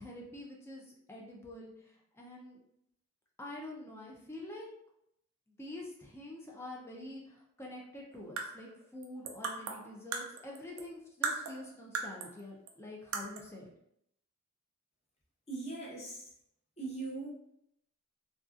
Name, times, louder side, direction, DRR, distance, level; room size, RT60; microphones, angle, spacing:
voice 1, 0.0-2.6 3.4-4.7 5.6-13.7, left 1 dB, 10° left, -2 dB, 0.4 m, -46 dB
sound 1, 8.1-10.9 11.2-12.4 12.7-12.8 13.1-13.5, right 5 dB, 90° right, 0.4 m, -38 dB
voice 2, 15.5-16.3 16.8-17.3, right 3 dB, 30° left, -4 dB, 0.7 m, -40 dB
2.6 x 2.2 x 2.4 m, 0.74 s
head